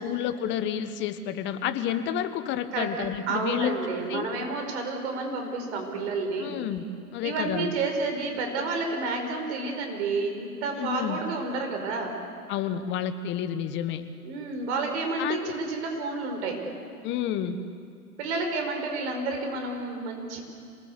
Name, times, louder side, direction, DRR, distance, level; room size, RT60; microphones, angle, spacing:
voice 1, 0.0-3.8 4.1-4.5 6.4-7.7 10.8-11.2 12.5-14.1 15.2-15.5 17.0-17.6, left 9 dB, 25° left, 11 dB, 1.3 m, -30 dB
voice 2, 3.3-6.6 7.2-12.2 14.2-16.6 18.2-20.4, right 3 dB, 45° right, 3 dB, 5.3 m, -30 dB
27.0 x 19.5 x 8.3 m, 2.4 s
hypercardioid pair, 120°, 46 cm